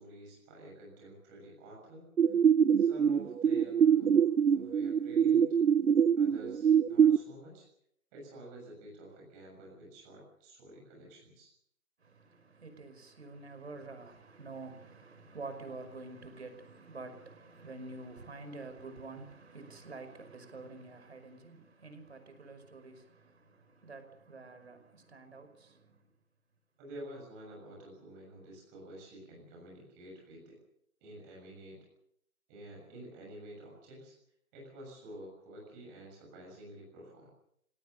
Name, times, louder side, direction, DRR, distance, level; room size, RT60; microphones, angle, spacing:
voice 1, 0.0-2.4 2.8-4.2 4.5-5.5 6.2-7.7 8.1-11.5 26.8-30.6 31.0-31.8 32.5-34.1 34.5-37.3, right 1 dB, 10° right, 6.8 m, -50 dB
sound 1, 2.2-7.2, right 8 dB, 90° right, 0.9 m, -24 dB
voice 2, 12.0-26.0, right 3 dB, 50° right, 5.5 m, -48 dB
29.5 x 18.0 x 6.7 m
hypercardioid pair, 175°, 43 cm